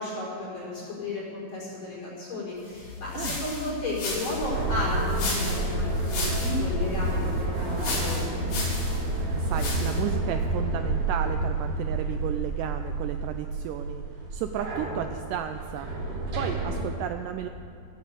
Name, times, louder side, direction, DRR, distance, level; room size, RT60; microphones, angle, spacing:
voice 1, 0.0-8.4, left 2 dB, 45° left, -6 dB, 5.9 m, -33 dB
sound 1, 2.8-10.1, left 3 dB, 85° left, 5.0 m, -34 dB
sound 2, 4.4-16.8, right 2 dB, 60° right, 4.3 m, -29 dB
voice 2, 9.3-14.0 14.3-17.5, right 10 dB, 90° right, 7 dB, 1.8 m, -33 dB
15.0 x 9.4 x 8.1 m, 2.6 s
omnidirectional pair, 4.3 m